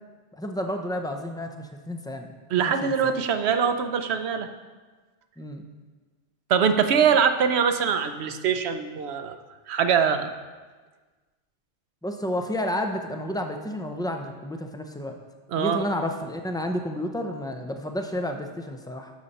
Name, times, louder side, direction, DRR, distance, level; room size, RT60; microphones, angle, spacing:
voice 1, 0.4-2.3 2.6-3.1 5.4-5.6 12.0-15.2 15.5-19.1, left 1 dB, 5° left, 4 dB, 0.4 m, -31 dB
voice 2, 2.5-4.5 6.5-9.4 9.7-10.3 15.5-15.8, right 7 dB, 65° right, 9 dB, 0.9 m, -23 dB
11.5 x 6.6 x 4.1 m, 1.3 s
omnidirectional pair, 1.2 m